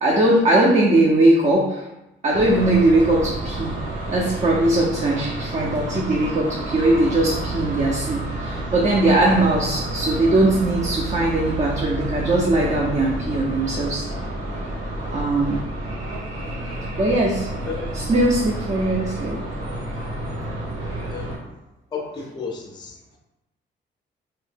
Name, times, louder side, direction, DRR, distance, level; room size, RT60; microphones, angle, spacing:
voice 1, 0.0-1.8 2.2-3.7 4.1-14.1 15.1-15.6 17.0-17.5 17.9-19.4, right 2 dB, 35° right, -2 dB, 0.6 m, -20 dB
sound 1, 2.3-21.4, right 1 dB, 85° right, 1.3 m, -30 dB
voice 2, 17.7-18.1 21.1-21.4 21.9-23.0, left 5 dB, 20° left, 2 dB, 0.5 m, -33 dB
2.8 x 2.6 x 3.5 m, 0.97 s
cardioid pair, 90°, 20 cm